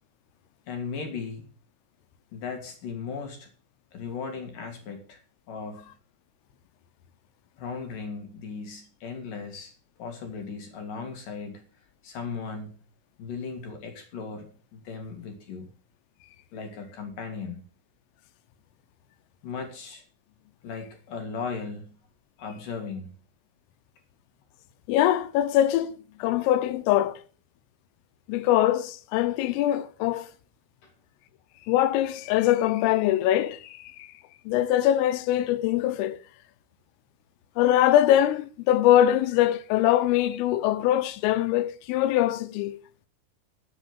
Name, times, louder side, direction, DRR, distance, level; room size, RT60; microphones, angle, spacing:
voice 1, 0.7-1.5 2.3-3.5 3.9-5.2 5.5-5.9 7.6-9.7 10.0-11.7 12.0-12.8 13.2-15.7 16.5-17.6 19.4-20.0 20.6-21.9 22.4-23.1 30.8-30.9, left 5 dB, 55° left, 2.9 m, -37 dB
voice 2, 24.9-27.2 28.3-30.3 31.7-34.1 34.5-36.2 37.6-42.8, left 12 dB, 85° left, 3.4 m, -23 dB
11.5 x 7.4 x 6.9 m
omnidirectional pair, 5.8 m